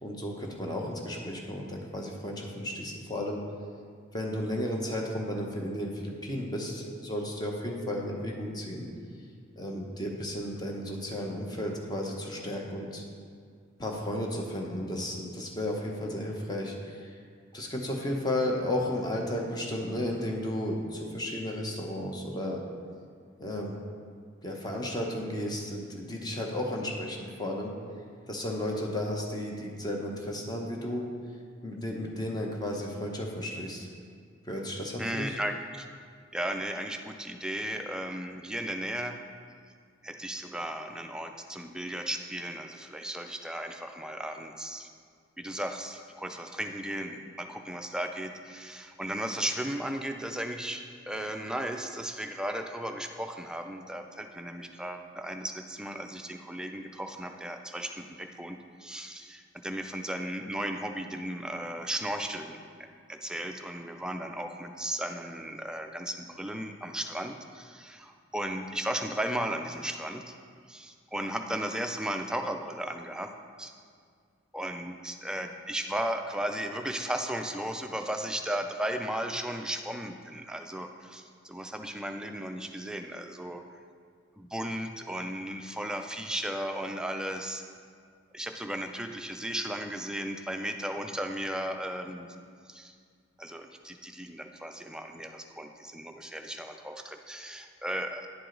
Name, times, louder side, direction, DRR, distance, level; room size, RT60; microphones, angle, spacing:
voice 1, 0.0-3.4 4.1-8.9 9.6-13.0 13.8-17.1 17.5-22.6 23.4-23.8 24.4-27.7 28.3-31.1 31.6-33.9 34.5-35.4, left 1 dB, 20° left, 0 dB, 0.8 m, -33 dB
voice 2, 35.0-35.9 36.3-39.2 40.0-44.9 45.4-62.6 63.1-70.4 70.7-73.3 73.6-73.7 74.5-83.6 84.4-87.6 88.3-92.3 92.7-92.9 93.4-98.3, right 1 dB, 5° right, 4 dB, 0.3 m, -35 dB
10.5 x 4.8 x 3.8 m, 2.1 s
head